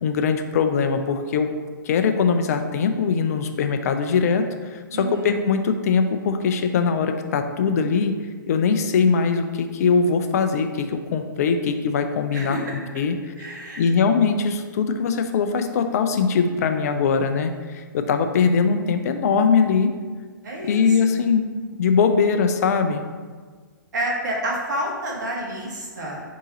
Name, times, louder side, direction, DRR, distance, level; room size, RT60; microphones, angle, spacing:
voice 1, 0.0-1.5 1.8-8.2 8.5-12.6 12.9-13.2 13.4-19.9 20.6-21.5 21.8-23.1, left 5 dB, 50° left, 7 dB, 0.4 m, -21 dB
voice 2, 4.9-5.3 12.3-12.7 13.4-13.9 20.4-21.2 23.9-26.2, right 1 dB, 60° right, -2 dB, 1.1 m, -29 dB
3.8 x 2.8 x 4.0 m, 1.5 s
figure-of-eight pair, 115°, 11 cm